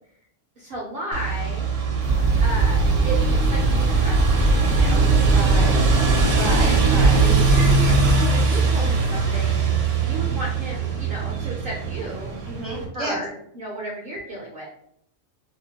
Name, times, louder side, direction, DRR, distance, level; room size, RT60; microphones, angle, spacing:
voice 1, 0.6-1.6 2.4-5.7 6.5-6.8 7.1-9.7 10.0-12.3 12.9-13.3 13.5-14.7, right 1 dB, 60° right, -3 dB, 0.7 m, -33 dB
sound 1, 1.1-12.8, right 5 dB, 85° right, 1.0 m, -22 dB
sound 2, 2.0-8.1, right 2 dB, 70° left, 1.0 m, -21 dB
voice 2, 5.3-5.8 6.4-7.2 12.4-13.2, equal, 5° left, -5 dB, 0.5 m, -31 dB
2.8 x 2.1 x 2.8 m, 0.72 s
omnidirectional pair, 1.3 m